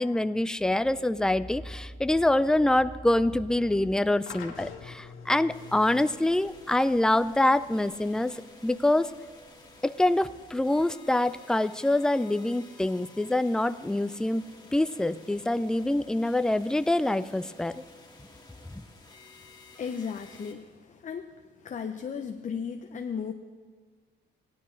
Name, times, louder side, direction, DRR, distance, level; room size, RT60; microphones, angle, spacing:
voice 1, 0.0-9.1 9.8-17.8 18.7-18.8, left 1 dB, 5° left, 14 dB, 0.3 m, -25 dB
sound 1, 4.3-11.3, left 6 dB, 80° left, 1.5 m, -49 dB
sound 2, 5.5-20.5, left 2 dB, 20° left, 1.8 m, -52 dB
voice 2, 19.8-21.3 21.6-23.3, left 6 dB, 40° left, 5 dB, 0.7 m, -35 dB
17.0 x 11.0 x 3.2 m, 1.5 s
cardioid pair, 90°, 20 cm